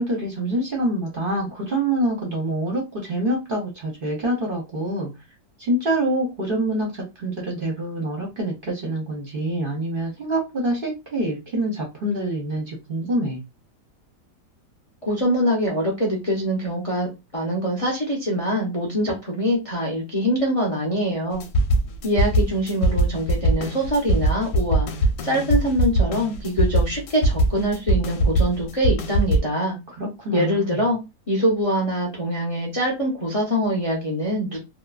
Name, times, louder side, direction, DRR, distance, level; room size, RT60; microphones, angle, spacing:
voice 1, 0.0-5.1 5.6-13.4 29.9-30.8, right 1 dB, 45° right, -1 dB, 0.7 m, -26 dB
voice 2, 15.0-21.4 22.0-24.9 25.2-29.8 30.3-31.0 31.3-34.6, equal, 40° left, -2 dB, 0.5 m, -24 dB
sound 1, 21.3-29.4, right 1 dB, 70° left, 1.0 m, -21 dB
2.8 x 2.2 x 2.3 m, 0.24 s
omnidirectional pair, 1.8 m